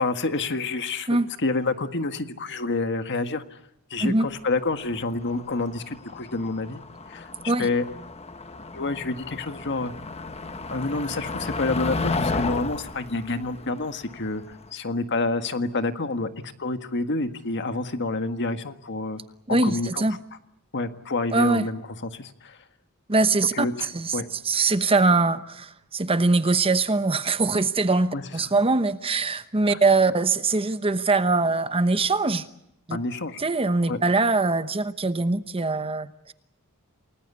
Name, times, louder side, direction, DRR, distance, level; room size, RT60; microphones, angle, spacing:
voice 1, 0.0-1.1 1.4-3.4 3.9-6.8 7.1-7.3 7.6-7.8 8.7-9.9 10.7-19.2 19.6-20.0 20.7-22.6 23.5-24.3 28.1-28.2 29.7-29.8 32.9-33.4 33.9-34.0, left 3 dB, 55° left, 8 dB, 1.7 m, -28 dB
Motor vehicle (road), 4.3-14.7, left 3 dB, 30° left, 1.2 m, -34 dB
voice 2, 19.5-20.2 21.3-21.6 23.1-23.7 23.9-24.2 24.4-32.5 32.9-33.0 33.4-36.3, right 3 dB, 25° right, 11 dB, 1.0 m, -22 dB
29.0 x 19.5 x 8.4 m, 0.82 s
head